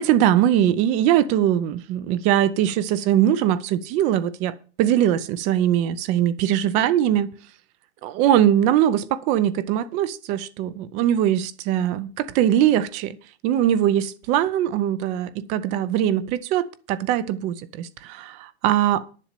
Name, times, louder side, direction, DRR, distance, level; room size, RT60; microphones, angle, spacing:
voice 1, 0.0-7.3 8.0-13.2 13.4-19.0, right 11 dB, 20° right, 0.5 m, -21 dB
11.0 x 7.4 x 6.7 m
supercardioid pair, 160°, 32 cm